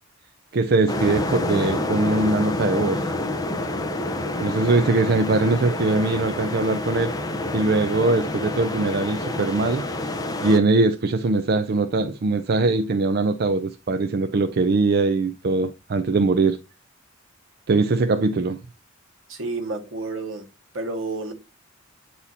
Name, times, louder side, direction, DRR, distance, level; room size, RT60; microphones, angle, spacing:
voice 1, 0.5-3.0 4.4-7.1 7.5-9.9 10.4-16.6 17.7-18.6, right 3 dB, 50° right, 0.4 m, -21 dB
sound 1, 0.9-10.6, left 1 dB, 20° left, 0.8 m, -28 dB
voice 2, 19.3-20.5 20.7-21.3, right 3 dB, 70° right, 1.5 m, -30 dB
8.4 x 4.2 x 2.7 m
head